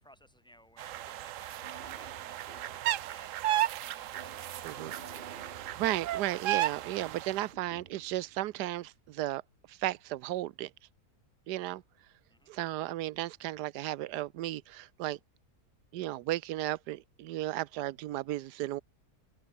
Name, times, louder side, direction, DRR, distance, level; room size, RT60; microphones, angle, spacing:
voice 1, 0.0-4.7 12.3-12.5, equal, 5° left, 1.7 m, -59 dB
sound 1, 0.8-7.4, right 13 dB, 65° right, 0.8 m, -34 dB
sound 2, 1.0-9.1, right 4 dB, 35° right, 2.0 m, -54 dB
voice 2, 5.5-9.4 9.7-10.7 11.5-11.8 12.5-15.2 15.9-18.8, right 15 dB, 80° right, 1.2 m, -34 dB
open air
omnidirectional pair, 1.7 m